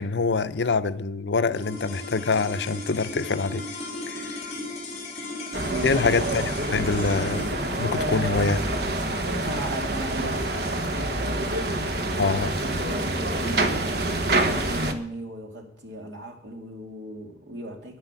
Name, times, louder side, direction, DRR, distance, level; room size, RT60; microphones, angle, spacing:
voice 1, 0.0-3.6 4.1-4.4 5.8-7.5 7.8-8.6 12.2-12.5, left 4 dB, 75° left, 0.7 m, -25 dB
sound 1, 1.5-12.0, left 2 dB, 35° left, 3.3 m, -37 dB
sound 2, 5.5-14.9, right 1 dB, 55° right, 1.2 m, -27 dB
voice 2, 5.6-6.1 7.9-8.7 9.3-10.6 10.8-14.3 14.6-18.0, right 1 dB, 80° right, 2.6 m, -36 dB
10.5 x 9.8 x 8.3 m
head